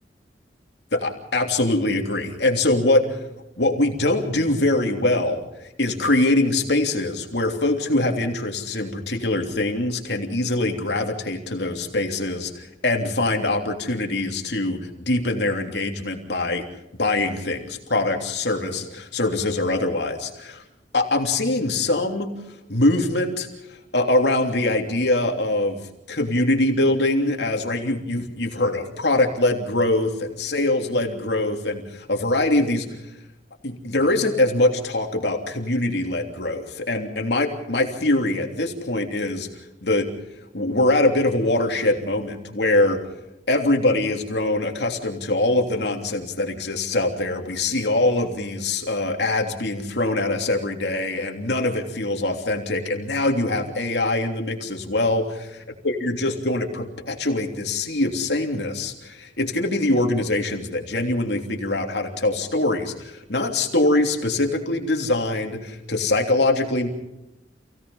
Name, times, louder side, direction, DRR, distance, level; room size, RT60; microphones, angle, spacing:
voice 1, 0.9-3.2 3.6-5.5 5.8-16.6 17.0-20.6 20.9-22.3 22.7-25.8 26.1-32.8 33.6-39.5 39.8-40.1 40.5-43.0 43.5-55.4 55.8-66.9, left 2 dB, 65° left, 3 dB, 3.2 m, -23 dB
28.5 x 17.5 x 5.6 m, 0.90 s
head